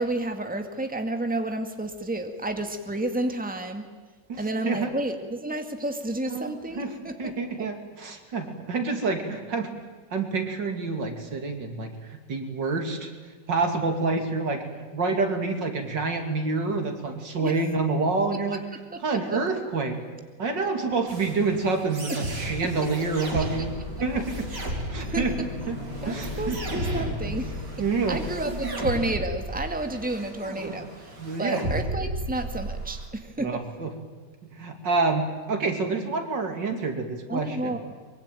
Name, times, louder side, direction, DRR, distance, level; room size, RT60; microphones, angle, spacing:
voice 1, 0.0-3.9 4.4-7.7 17.4-17.6 18.9-19.4 25.0-25.5 26.0-27.6 28.1-31.1 31.4-33.5 37.3-37.8, right 2 dB, 5° right, 5 dB, 1.9 m, -31 dB
voice 2, 6.3-9.7 10.1-13.1 13.5-14.6 14.9-18.6 19.0-20.0 20.4-23.7 24.0-24.5 24.9-25.8 26.1-26.6 27.2-27.4 27.8-28.2 28.5-28.8 30.6-30.9 31.2-31.6 33.4-33.9 34.5-37.8, right 3 dB, 90° right, 5 dB, 3.4 m, -28 dB
sound 1, 21.1-33.1, right 1 dB, 70° right, 4.4 m, -35 dB
sound 2, 23.1-30.8 31.0-31.1, left 2 dB, 40° left, 4.9 m, -38 dB
23.5 x 23.0 x 9.2 m, 1.4 s
omnidirectional pair, 1.9 m